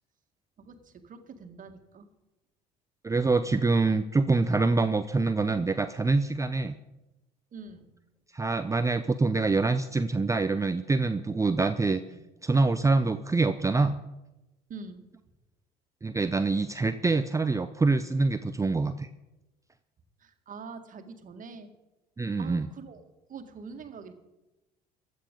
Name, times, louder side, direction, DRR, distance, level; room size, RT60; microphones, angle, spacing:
voice 1, 0.6-2.1 7.5-7.9 12.1-12.2 14.7-15.1 20.2-21.7 22.4-23.0 23.3-24.1, right 4 dB, 40° right, 7 dB, 1.9 m, -44 dB
voice 2, 3.0-6.8 8.3-12.0 12.4-14.0 16.0-19.1 22.2-22.7, right 3 dB, 15° right, 10 dB, 0.7 m, -25 dB
16.0 x 11.5 x 5.3 m, 1.0 s
hypercardioid pair, 60°, 20 cm